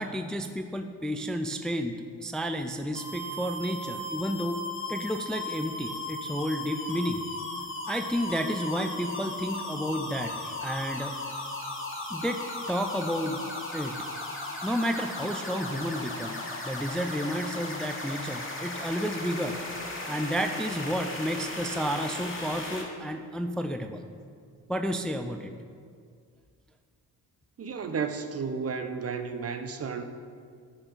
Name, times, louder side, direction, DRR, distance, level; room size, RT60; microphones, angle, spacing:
voice 1, 0.0-4.6 4.9-7.2 7.9-11.1 12.1-13.4 13.7-14.0 14.6-19.6 20.1-24.1 24.7-25.5, equal, ahead, 6 dB, 0.4 m, -31 dB
sound 1, 2.9-22.8, left 2 dB, 30° left, 2.2 m, -36 dB
voice 2, 27.6-30.0, right 5 dB, 40° right, 8 dB, 0.7 m, -32 dB
9.8 x 4.8 x 5.2 m, 2.1 s
supercardioid pair, 65°, 38 cm